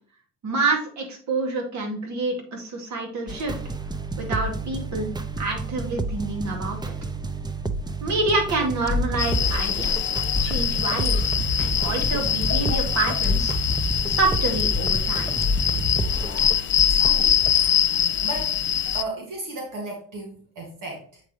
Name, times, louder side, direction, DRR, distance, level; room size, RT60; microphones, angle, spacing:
voice 1, 0.4-3.6 4.2-5.1 5.4-6.9 8.0-9.9 10.4-11.3 11.6-13.5 14.1-15.4, right 3 dB, 70° right, 1 dB, 2.2 m, -27 dB
sound 1, 3.3-16.5, right 3 dB, 15° right, 0.6 m, -31 dB
sound 2, 8.9-17.5, left 2 dB, 10° left, 1.2 m, -28 dB
sound 3, 9.2-19.0, left 9 dB, 40° left, 0.5 m, -24 dB
voice 2, 16.9-17.4 18.2-18.5 18.9-21.2, right 2 dB, 85° right, -1 dB, 2.0 m, -35 dB
8.1 x 4.9 x 3.1 m, 0.43 s
cardioid pair, 90°, 30 cm